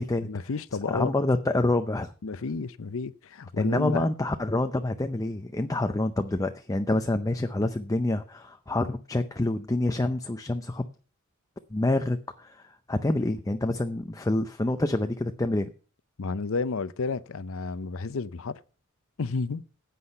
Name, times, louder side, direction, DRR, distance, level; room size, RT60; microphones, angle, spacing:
voice 1, 0.2-1.1 2.2-4.1 16.2-18.6 19.2-19.6, left 4 dB, 65° left, 0.6 m, -31 dB
voice 2, 0.9-2.1 3.6-10.8 11.7-15.7, left 2 dB, 15° left, 0.6 m, -27 dB
9.7 x 8.4 x 5.5 m
head